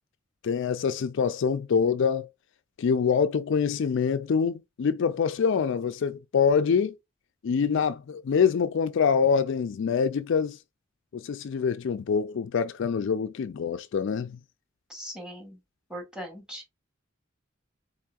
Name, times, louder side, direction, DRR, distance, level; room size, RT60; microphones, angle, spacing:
voice 1, 0.4-2.3 2.8-7.0 7.4-10.6 11.1-14.4, left 6 dB, 65° left, 0.4 m, -25 dB
voice 2, 14.9-15.6 15.9-16.7, equal, 5° right, 2.0 m, -40 dB
4.5 x 3.5 x 2.4 m
head